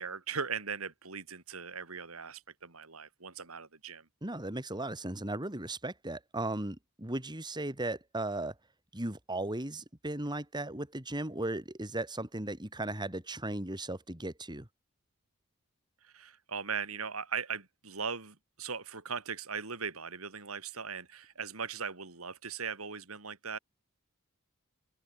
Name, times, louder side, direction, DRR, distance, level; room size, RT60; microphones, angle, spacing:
voice 1, 0.0-4.1 16.0-23.6, right 6 dB, 80° right, 3.3 m, -39 dB
voice 2, 4.2-8.5 8.9-14.7, right 1 dB, 20° right, 3.2 m, -36 dB
open air
head